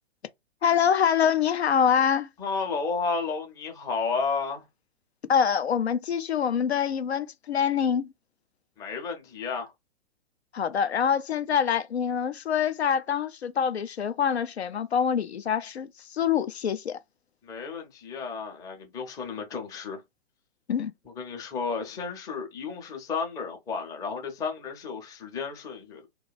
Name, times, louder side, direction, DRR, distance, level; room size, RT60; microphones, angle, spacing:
voice 1, 0.6-2.3 5.3-8.1 10.5-17.0 20.7-20.9, left 7 dB, 75° left, 0.5 m, -25 dB
voice 2, 2.4-4.6 8.8-9.7 17.4-20.0 21.2-26.1, left 4 dB, 10° left, 0.6 m, -32 dB
2.5 x 2.3 x 3.8 m
figure-of-eight pair, 115°, 32 cm